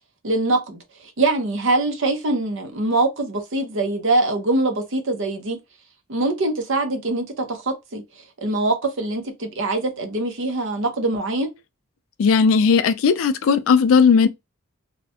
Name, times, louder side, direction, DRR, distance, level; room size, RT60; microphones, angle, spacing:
voice 1, 0.2-0.8 1.2-5.6 6.1-8.0 8.4-11.5, right 2 dB, 55° right, 0.6 m, -23 dB
voice 2, 12.2-14.3, left 5 dB, 65° left, 0.3 m, -16 dB
2.4 x 2.1 x 2.7 m
head